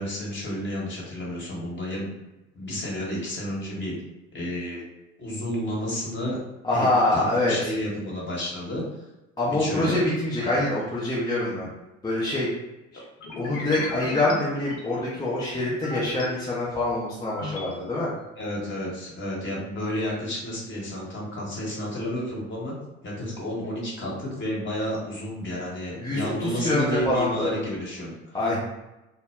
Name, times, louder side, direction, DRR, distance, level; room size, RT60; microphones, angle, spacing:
voice 1, 0.0-2.1 2.5-3.9 4.3-4.8 5.2-6.4 6.7-8.8 9.6-10.0 10.4-10.6 18.4-22.7 23.0-28.6, left 1 dB, 30° left, -4 dB, 1.1 m, -31 dB
voice 2, 6.6-7.7 9.4-11.7 12.0-12.5 12.9-13.0 13.4-18.1 26.0-27.5 28.3-28.6, left 2 dB, 10° left, -7 dB, 0.6 m, -25 dB
sound 1, 13.2-16.2 16.7-17.7, left 2 dB, 50° left, 0.8 m, -37 dB
2.1 x 2.1 x 3.5 m, 1.0 s
figure-of-eight pair, 55°, 39 cm